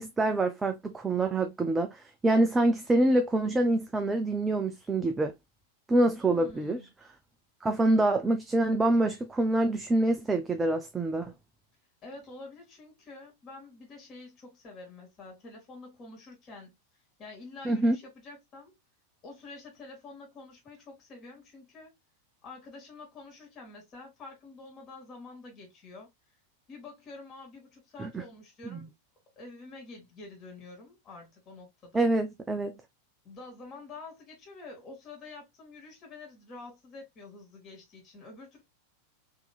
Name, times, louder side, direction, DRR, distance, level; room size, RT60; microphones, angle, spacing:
voice 1, 0.0-5.3 5.9-6.8 7.6-11.3 17.6-18.0 28.0-28.2 28.7-28.9 31.9-32.7, right 2 dB, 10° right, 0.5 m, -26 dB
voice 2, 6.2-6.9 12.0-16.8 17.2-18.7 19.2-21.9 22.4-26.1 26.7-28.9 29.4-32.1 33.2-38.6, left 3 dB, 30° left, 2.4 m, -47 dB
4.3 x 3.5 x 2.2 m
figure-of-eight pair, 90°, 0 cm